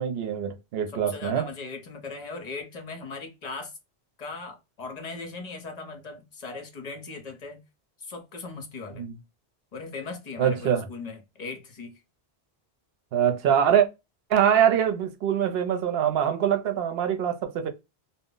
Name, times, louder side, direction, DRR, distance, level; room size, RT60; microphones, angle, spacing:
voice 1, 0.0-1.5 9.0-9.2 10.4-10.9 13.1-13.9 14.3-17.7, right 9 dB, 70° right, 0.8 m, -23 dB
voice 2, 0.9-3.7 4.2-7.6 8.0-9.1 9.7-12.0, left 3 dB, 45° left, 0.7 m, -38 dB
2.1 x 2.0 x 3.7 m
omnidirectional pair, 1.1 m